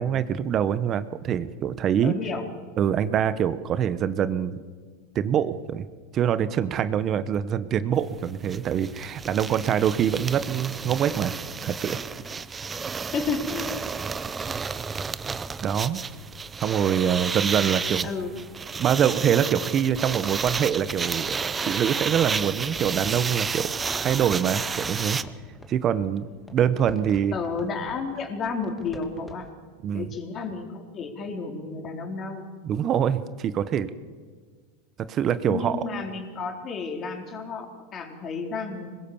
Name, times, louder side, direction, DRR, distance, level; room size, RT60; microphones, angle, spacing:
voice 1, 0.0-2.1 2.8-4.6 5.1-5.9 6.1-12.0 15.6-16.0 16.6-18.1 18.8-23.7 24.0-25.2 25.7-27.3 29.8-30.1 32.6-33.9 35.1-35.8, right 9 dB, 35° right, 14 dB, 1.1 m, -24 dB
voice 2, 2.0-2.4 13.1-13.9 18.0-18.3 27.3-29.5 29.9-32.4 35.5-39.0, left 4 dB, 35° left, 3 dB, 4.1 m, -32 dB
sound 1, 8.0-8.1 8.3-25.2, right 5 dB, 20° right, 0.8 m, -31 dB
sound 2, 22.0-29.5, equal, 10° left, 2.5 m, -48 dB
25.5 x 21.5 x 7.2 m, 1.5 s
supercardioid pair, 120°, 0 cm